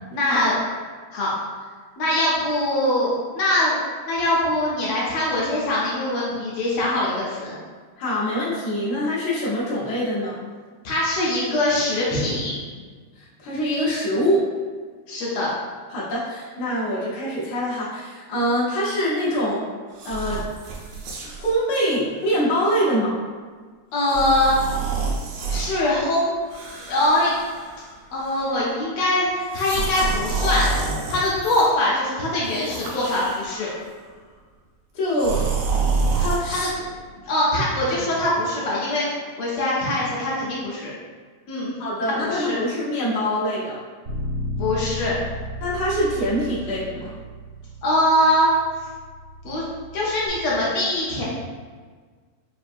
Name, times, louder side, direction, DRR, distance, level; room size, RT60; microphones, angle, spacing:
voice 1, 0.1-0.6 1.1-1.3 2.0-3.7 4.1-7.5 10.8-12.5 15.1-15.5 23.9-24.7 25.5-26.3 26.9-27.3 28.1-30.7 31.1-33.7 36.5-36.9 37.2-40.9 41.5-41.7 42.2-42.6 44.6-45.2 47.8-48.5 49.4-49.6 49.9-51.2, left 1 dB, 70° left, -6 dB, 1.4 m, -22 dB
voice 2, 8.0-10.4 13.2-14.5 15.9-19.7 20.0-20.4 21.4-23.2 34.9-35.4 36.2-36.7 41.8-43.7 45.6-47.1, equal, 85° left, -8 dB, 0.8 m, -24 dB
sound 1, 19.9-21.5 22.2-22.4 24.0-25.7 26.5-27.9 28.2-28.6 29.4-31.7 32.4-33.8 35.1-36.4, right 4 dB, 75° right, 1.6 m, -28 dB
Bass guitar, 44.0-50.3, left 1 dB, 40° right, 0.8 m, -34 dB
5.3 x 2.5 x 2.5 m, 1.5 s
omnidirectional pair, 3.3 m